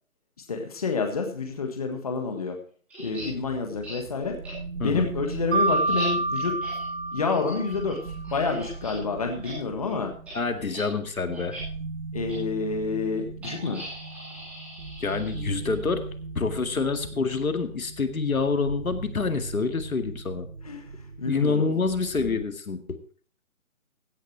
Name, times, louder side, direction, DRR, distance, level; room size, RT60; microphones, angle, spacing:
voice 1, 0.5-2.6 3.0-4.4 4.8-6.5 7.1-8.0 8.3-10.1 12.1-13.8 20.6-20.8 21.2-21.7, left 4 dB, 25° left, 4 dB, 1.6 m, -28 dB
sound 1, 2.9-3.3 3.8-4.0 4.4-4.5 5.0-9.0 9.3-9.5 9.8-10.0 10.3-10.4 10.7-10.9 11.3-11.6 12.3-12.4 13.4-15.8, equal, 5° right, 2.9 m, -41 dB
sound 2, 3.0-22.4, right 4 dB, 85° right, 6.9 m, -39 dB
Mallet percussion, 5.5-8.3, right 2 dB, 55° right, 5.5 m, -28 dB
voice 2, 10.3-11.6 15.0-16.0 16.4-20.5 21.2-23.0, left 4 dB, 80° left, 9 dB, 2.1 m, -27 dB
16.0 x 8.8 x 4.5 m, 0.43 s
hypercardioid pair, 175°, 42 cm